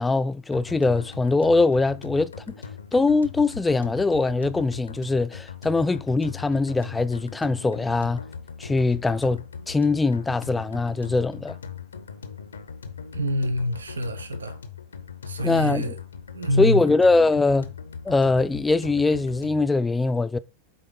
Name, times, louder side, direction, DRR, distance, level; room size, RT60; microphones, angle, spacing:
voice 1, 0.0-2.3 2.9-8.2 8.6-11.6 15.4-15.9 16.6-17.7 18.0-20.4, left 3 dB, 10° left, 0.4 m, -22 dB
sound 1, 0.5-19.7, left 6 dB, 70° left, 0.7 m, -40 dB
voice 2, 13.1-14.6 15.3-16.0 16.3-16.8, equal, 70° right, 0.6 m, -26 dB
8.4 x 3.7 x 3.8 m
figure-of-eight pair, 90°, 0 cm